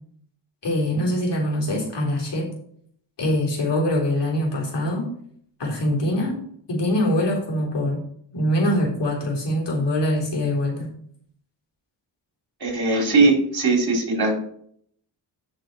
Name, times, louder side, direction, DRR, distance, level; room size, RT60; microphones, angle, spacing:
voice 1, 0.6-2.5 3.2-5.1 5.6-6.4 6.7-8.0 8.3-10.9, left 1 dB, 55° left, -2 dB, 3.5 m, -23 dB
voice 2, 12.6-14.3, right 3 dB, 45° right, 1 dB, 3.7 m, -19 dB
8.8 x 6.5 x 4.5 m, 0.64 s
cardioid pair, 70°, 50 cm